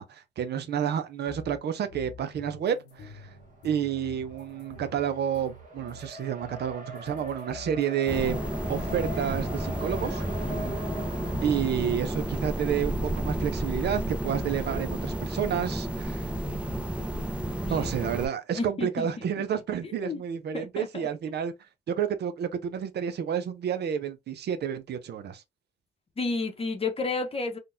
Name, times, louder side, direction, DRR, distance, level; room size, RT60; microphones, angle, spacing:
voice 1, 0.0-3.3 3.6-8.4 8.7-10.5 11.4-16.3 17.7-21.5 21.9-25.4, right 8 dB, 55° right, 0.5 m, -30 dB
sound 1, 1.3-6.1 6.4-13.6 13.9-14.5, left 2 dB, 65° left, 0.9 m, -48 dB
Race car auto racing, 2.9-15.5, equal, 40° right, 1.0 m, -44 dB
sound 2, 8.1-18.3, right 1 dB, 5° right, 0.5 m, -31 dB
voice 2, 10.4-10.8 17.7-17.9 18.5-20.2 20.5-21.1 26.2-27.6, left 3 dB, 30° left, 0.8 m, -32 dB
3.7 x 2.2 x 2.5 m
cardioid pair, 90°, 20 cm